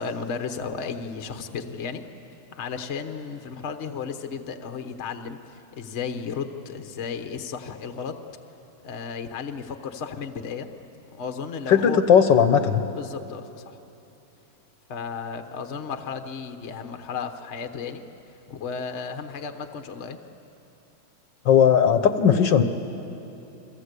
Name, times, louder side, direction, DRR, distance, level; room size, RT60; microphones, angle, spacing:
voice 1, 0.0-2.0 2.5-8.2 8.8-10.7 11.1-12.0 12.9-13.8 14.9-18.0 18.5-20.2, left 6 dB, 40° left, 6 dB, 1.2 m, -34 dB
voice 2, 11.7-12.8 21.4-22.6, left 7 dB, 65° left, 9 dB, 1.5 m, -17 dB
29.5 x 23.5 x 8.3 m, 3.0 s
omnidirectional pair, 2.3 m